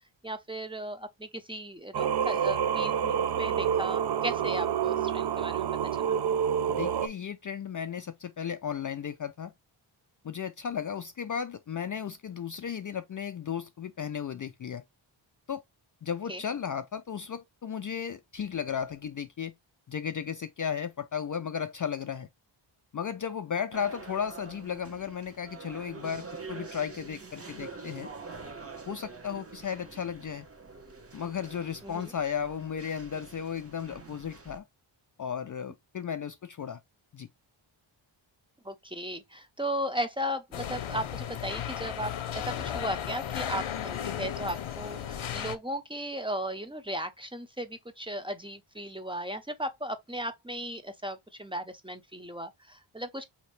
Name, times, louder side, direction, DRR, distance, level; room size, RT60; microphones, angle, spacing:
voice 1, 0.2-5.7 6.1-6.2 16.3-16.4 31.8-32.1 38.6-53.2, right 1 dB, 10° right, 0.7 m, -36 dB
Singing, 1.9-7.1, right 8 dB, 55° right, 0.6 m, -28 dB
voice 2, 6.7-9.5 10.2-14.8 15.5-15.6 16.0-19.5 19.9-22.3 22.9-28.1 28.9-30.5 31.1-34.6 35.2-36.8 37.1-37.3, left 7 dB, 45° left, 0.4 m, -35 dB
sound 1, 23.7-34.6, right 4 dB, 30° right, 1.0 m, -46 dB
sound 2, 40.5-45.6, left 9 dB, 75° left, 0.8 m, -35 dB
5.1 x 2.9 x 3.2 m
wide cardioid pair, 115°, 49 cm